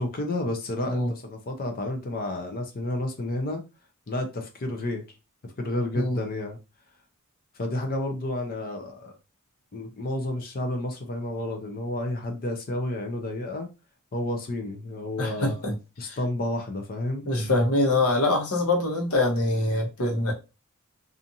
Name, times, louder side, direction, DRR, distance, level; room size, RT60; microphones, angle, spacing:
voice 1, 0.0-3.6 4.1-5.0 5.4-6.6 7.6-9.2 9.7-13.7 14.1-15.7 16.0-17.3, left 1 dB, 40° left, 0.5 m, -31 dB
voice 2, 15.2-15.7 16.0-16.2 17.3-20.3, left 2 dB, 80° left, 0.9 m, -24 dB
2.6 x 2.4 x 2.7 m
head